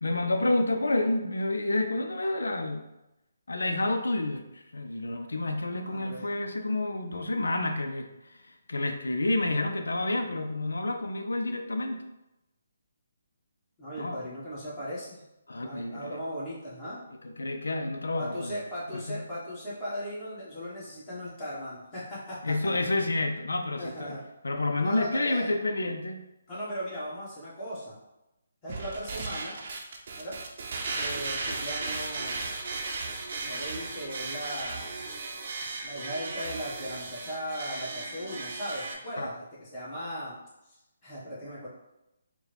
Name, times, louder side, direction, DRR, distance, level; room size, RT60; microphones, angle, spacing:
voice 1, 0.0-2.9 3.5-8.3 8.7-12.0 14.0-14.2 15.5-16.2 17.2-18.5 18.9-19.2 22.4-24.1 24.4-26.2 39.2-39.3, left 2 dB, 85° left, 5 dB, 0.5 m, -29 dB
voice 2, 5.8-6.4 13.8-15.2 15.6-17.0 18.2-22.5 23.8-24.2 24.8-25.5 26.5-28.0 28.6-29.6 30.2-30.4 30.9-32.5 33.4-35.0 35.8-40.4 41.0-41.7, equal, 20° left, -9 dB, 1.5 m, -37 dB
sound 1, 28.7-38.9, right 3 dB, 50° right, 0.6 m, -36 dB
4.6 x 2.2 x 3.4 m, 0.93 s
figure-of-eight pair, 150°, 0 cm